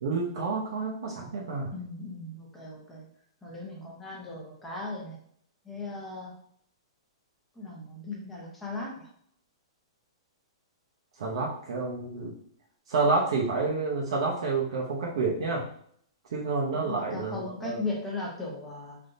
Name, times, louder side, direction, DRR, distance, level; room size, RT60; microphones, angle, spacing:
voice 1, 0.0-1.7 11.2-12.3 12.9-15.7 16.3-17.8, right 3 dB, 65° right, -2 dB, 0.7 m, -29 dB
voice 2, 1.7-3.1 3.4-5.2 5.6-6.4 7.5-9.1 16.7-19.0, left 3 dB, 5° left, -3 dB, 0.7 m, -37 dB
3.4 x 2.7 x 2.6 m, 0.64 s
hypercardioid pair, 165°, 3 cm